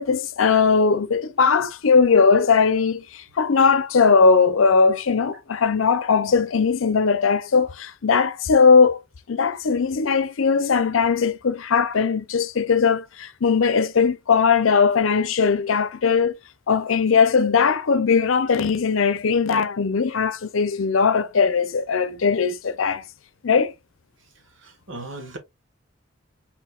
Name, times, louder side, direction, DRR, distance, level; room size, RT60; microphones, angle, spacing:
voice 1, 0.0-9.0 9.3-16.4 16.7-23.0 23.4-23.7, left 5 dB, 85° left, 0.6 m, -19 dB
voice 2, 24.6-25.4, right 2 dB, 70° right, 1.5 m, -37 dB
4.8 x 3.7 x 2.4 m
head